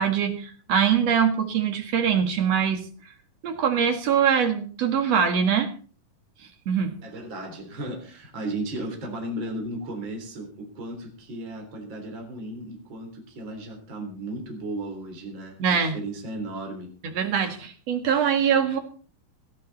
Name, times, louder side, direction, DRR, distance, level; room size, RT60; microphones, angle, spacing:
voice 1, 0.0-2.8 3.4-5.7 6.7-6.9 15.6-16.0 17.0-18.8, right 7 dB, 50° right, 5 dB, 2.7 m, -23 dB
voice 2, 7.0-16.9, right 1 dB, 30° right, 3 dB, 4.0 m, -35 dB
17.5 x 13.0 x 4.2 m, 0.39 s
omnidirectional pair, 4.4 m